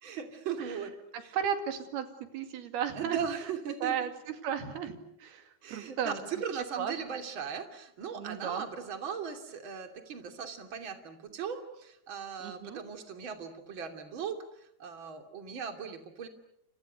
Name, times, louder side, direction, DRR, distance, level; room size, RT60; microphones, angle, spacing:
voice 1, 0.0-0.9 1.2-1.4 2.9-3.9 5.6-16.3, right 7 dB, 35° right, 6 dB, 3.1 m, -38 dB
voice 2, 1.1-2.1 2.3-3.2 3.8-6.2 6.8-6.9 8.2-8.7 12.4-12.8, right 8 dB, 75° right, 7 dB, 4.2 m, -34 dB
30.0 x 29.0 x 6.7 m, 0.76 s
omnidirectional pair, 4.6 m